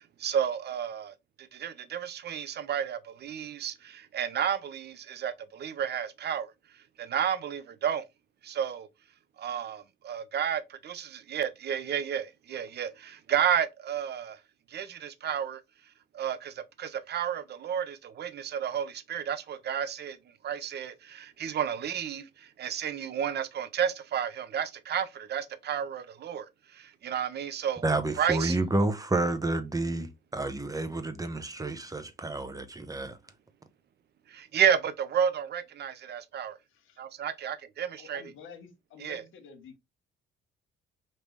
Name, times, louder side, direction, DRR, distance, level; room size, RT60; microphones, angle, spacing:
voice 1, 0.0-6.5 7.0-8.0 8.4-8.9 9.4-14.4 14.7-15.6 16.1-20.2 20.4-27.8 28.2-28.6 34.3-36.6 37.0-38.2 39.0-39.2, right 8 dB, 55° right, 0.7 m, -31 dB
voice 2, 27.8-33.2, right 2 dB, 15° right, 0.9 m, -30 dB
voice 3, 36.7-37.0 38.0-39.8, left 6 dB, 80° left, 1.4 m, -50 dB
5.2 x 2.9 x 3.2 m
cardioid pair, 90°, 20 cm